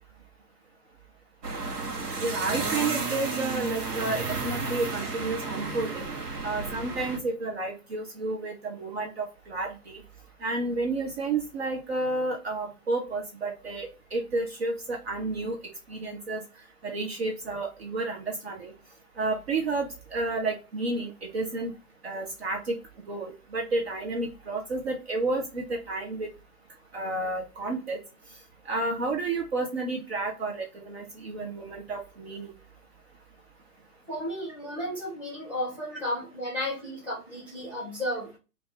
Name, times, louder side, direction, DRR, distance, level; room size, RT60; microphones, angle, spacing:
sound 1, 1.4-7.2, right 3 dB, 80° right, 0.9 m, -32 dB
voice 1, 2.2-6.1 6.4-10.0 10.4-15.6 15.9-16.4 16.8-18.7 19.2-21.7 22.0-22.8 23.1-26.3 26.9-28.0 28.7-32.5, right 3 dB, 45° right, 2 dB, 0.6 m, -31 dB
voice 2, 34.1-38.3, left 1 dB, 5° right, -5 dB, 0.8 m, -33 dB
2.5 x 2.4 x 3.9 m, 0.30 s
figure-of-eight pair, 130°, 46 cm